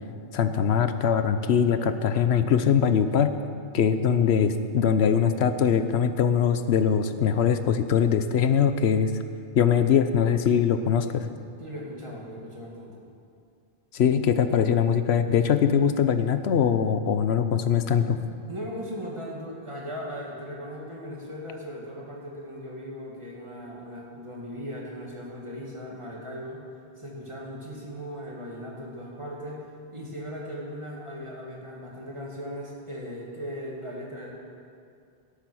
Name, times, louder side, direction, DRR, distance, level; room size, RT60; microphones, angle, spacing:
voice 1, 0.3-3.3 3.7-9.1 9.6-11.3 13.9-18.2, left 7 dB, 85° left, 10 dB, 1.0 m, -22 dB
voice 2, 11.6-13.0 18.5-26.6 27.0-29.6 29.9-34.3, equal, 30° right, -3 dB, 2.4 m, -38 dB
17.5 x 8.5 x 6.3 m, 2.3 s
omnidirectional pair, 1.1 m